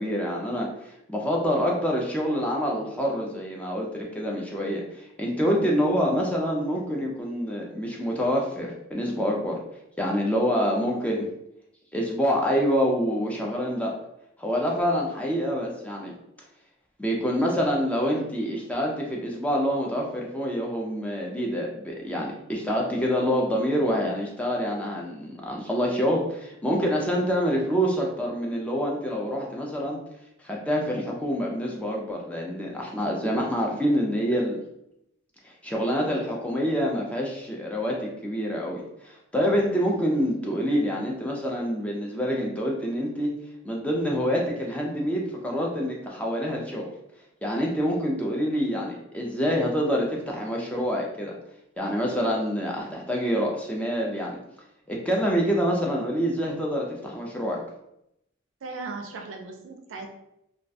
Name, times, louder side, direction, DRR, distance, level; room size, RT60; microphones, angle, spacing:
voice 1, 0.0-9.6 10.0-11.3 11.9-13.9 14.4-16.2 17.0-30.0 30.4-34.6 35.4-43.3 43.6-46.9 47.4-51.4 51.8-54.4 54.9-57.6, equal, 5° left, -2 dB, 0.3 m, -26 dB
voice 2, 10.7-11.0 58.6-60.1, right 4 dB, 65° right, 4 dB, 0.4 m, -37 dB
2.3 x 2.1 x 2.6 m, 0.81 s
head